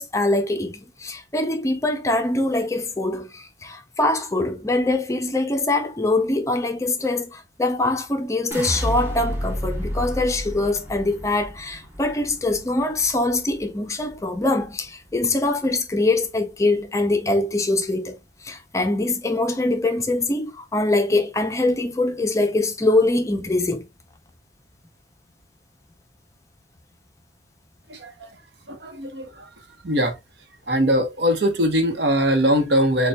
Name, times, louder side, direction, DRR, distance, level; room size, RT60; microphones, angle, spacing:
voice 1, 0.0-18.2 18.4-23.9, left 2 dB, 15° left, 0.4 m, -23 dB
sound 1, 8.5-14.7 15.1-15.7, equal, 15° right, 0.7 m, -31 dB
voice 2, 27.9-28.4 28.7-29.5 29.8-30.1 30.7-33.1, equal, 70° right, 0.9 m, -21 dB
6.6 x 2.2 x 2.2 m
head